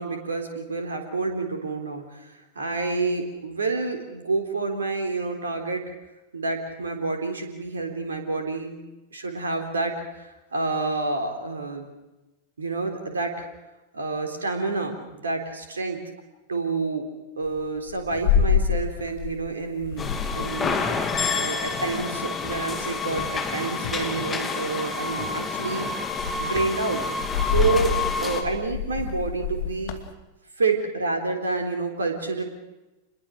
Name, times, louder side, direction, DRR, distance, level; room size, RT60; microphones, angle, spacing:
voice 1, 0.0-5.8 6.3-8.8 9.1-11.9 12.6-13.5 13.9-16.0 16.5-17.1 17.4-20.1 20.3-20.7 21.3-25.9 26.4-30.0 30.6-32.4, right 3 dB, 70° right, 4 dB, 3.7 m, -28 dB
sound 1, 17.5-19.5 19.8-22.1 22.4-24.0 25.1-25.5 25.9-30.1, left 7 dB, 50° left, 2.6 m, -28 dB
sound 2, 20.0-28.4, left 4 dB, 20° left, 3.0 m, -29 dB
27.5 x 21.5 x 6.4 m, 1.0 s
figure-of-eight pair, 90°, 0 cm